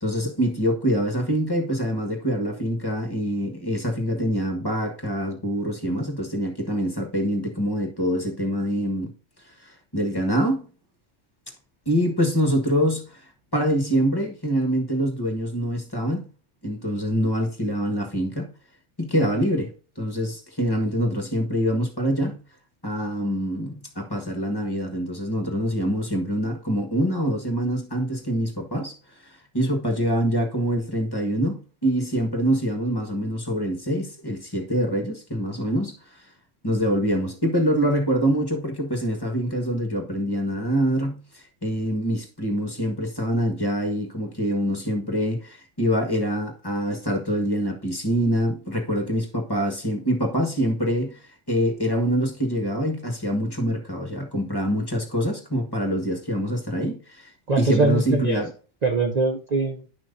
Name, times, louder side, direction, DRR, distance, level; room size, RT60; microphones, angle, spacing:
voice 1, 0.0-9.1 9.6-10.7 11.8-13.2 13.5-16.2 16.6-18.5 19.0-19.7 20.0-22.4 22.8-28.9 29.5-35.9 36.6-51.2 51.5-58.5, equal, 20° left, 1.4 m, -25 dB
voice 2, 57.5-58.4 58.8-59.9, right 3 dB, 40° right, 0.7 m, -22 dB
11.0 x 6.0 x 2.7 m
omnidirectional pair, 1.3 m